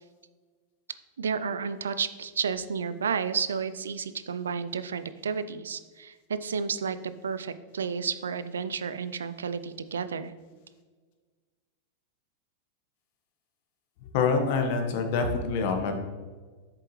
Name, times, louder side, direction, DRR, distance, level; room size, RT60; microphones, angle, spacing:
voice 1, 1.2-10.3, right 6 dB, 90° right, 13 dB, 0.4 m, -31 dB
voice 2, 14.1-16.0, left 4 dB, 60° left, 5 dB, 1.3 m, -26 dB
8.0 x 6.8 x 3.1 m, 1.4 s
hypercardioid pair, 110°, 0 cm